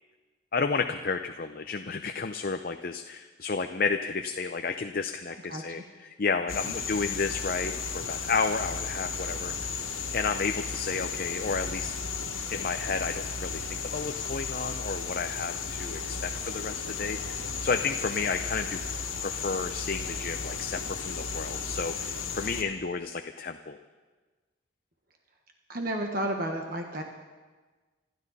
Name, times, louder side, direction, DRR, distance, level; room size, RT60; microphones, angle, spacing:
voice 1, 0.5-9.5 10.1-11.9 12.5-18.8 19.2-23.8, left 4 dB, 45° left, 6 dB, 0.6 m, -32 dB
sound 1, 6.5-22.6, left 5 dB, 85° left, 1.9 m, -34 dB
voice 2, 25.7-27.0, right 1 dB, 45° right, 3 dB, 1.3 m, -31 dB
26.5 x 13.0 x 4.1 m, 1.3 s
head